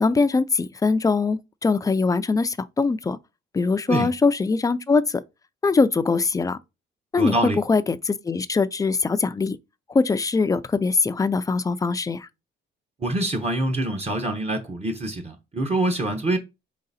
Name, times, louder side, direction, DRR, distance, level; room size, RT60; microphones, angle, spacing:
voice 1, 0.0-3.2 3.5-5.2 5.6-6.6 7.1-9.6 9.9-12.3, left 4 dB, 15° left, 0.4 m, -22 dB
voice 2, 7.2-7.6 13.0-16.4, right 1 dB, 30° right, 1.0 m, -25 dB
3.9 x 3.2 x 4.1 m
cardioid pair, 90°, 20 cm